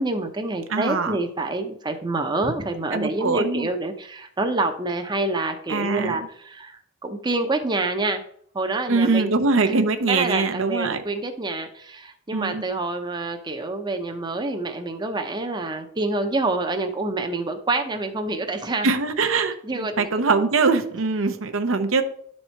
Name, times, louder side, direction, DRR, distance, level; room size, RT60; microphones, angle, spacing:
voice 1, 0.0-8.2 8.5-9.8 10.1-18.9 19.6-20.2, right 2 dB, 20° right, 5 dB, 0.7 m, -27 dB
voice 2, 0.7-1.2 2.9-3.7 5.7-6.1 8.9-11.0 12.3-12.6 18.8-22.0, right 4 dB, 70° right, 8 dB, 0.7 m, -22 dB
11.0 x 4.3 x 4.5 m, 0.64 s
head